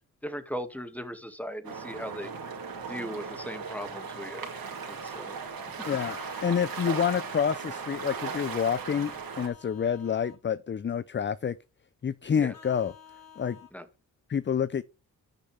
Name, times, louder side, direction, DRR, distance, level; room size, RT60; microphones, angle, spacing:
voice 1, 0.2-2.5 2.9-4.5 4.9-5.4 12.4-12.5 13.7-13.9, equal, 5° left, 2.0 m, -38 dB
sound 1, 1.6-9.5, right 5 dB, 75° right, 2.9 m, -37 dB
Vehicle horn car horn honking, 5.8-7.4 8.9-10.4 12.5-13.7, left 6 dB, 75° left, 5.5 m, -49 dB
voice 2, 5.8-11.6 12.0-12.9 13.4-13.6 14.3-14.8, left 7 dB, 30° left, 0.5 m, -28 dB
13.0 x 6.6 x 3.4 m
cardioid pair, 55°, 36 cm